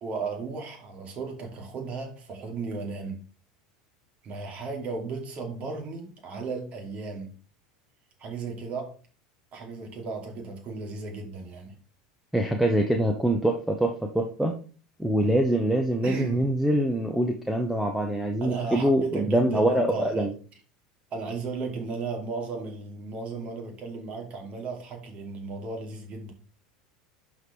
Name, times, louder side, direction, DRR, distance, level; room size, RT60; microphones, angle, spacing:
voice 1, 0.0-3.2 4.2-7.3 8.2-8.9 9.5-11.7 16.0-16.5 18.4-20.3 21.1-26.3, right 4 dB, 40° right, 2 dB, 2.7 m, -35 dB
voice 2, 12.3-14.5 15.0-20.3, right 1 dB, 5° right, 4 dB, 1.1 m, -24 dB
11.0 x 4.7 x 3.3 m, 0.40 s
figure-of-eight pair, 75°, 3 cm